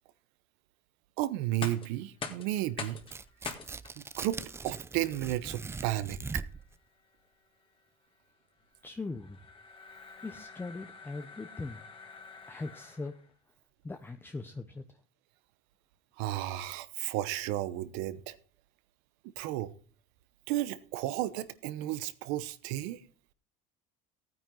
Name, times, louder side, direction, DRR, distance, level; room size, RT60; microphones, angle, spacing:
voice 1, 1.2-3.0 4.0-6.4 16.2-18.4 19.4-19.7 20.5-23.0, right 15 dB, 80° right, 1.0 m, -33 dB
sound 1, 1.4-13.3, left 5 dB, 30° left, 2.1 m, -47 dB
Tearing, 3.0-6.7, right 4 dB, 15° right, 0.5 m, -41 dB
voice 2, 8.8-9.4 10.2-11.8 12.5-13.2 13.8-14.8, left 3 dB, 10° left, 0.8 m, -40 dB
15.0 x 9.3 x 3.9 m
supercardioid pair, 115°, 18 cm